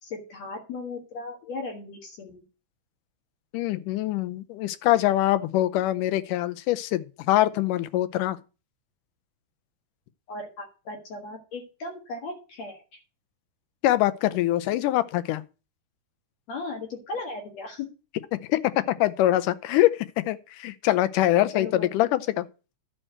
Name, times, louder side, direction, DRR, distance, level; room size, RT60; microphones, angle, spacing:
voice 1, 0.0-2.4 10.3-13.0 16.5-17.9 21.5-22.1, left 3 dB, 60° left, 2.8 m, -37 dB
voice 2, 3.5-8.4 13.8-15.4 18.5-22.4, left 14 dB, 85° left, 2.3 m, -24 dB
11.0 x 4.5 x 7.7 m
omnidirectional pair, 3.6 m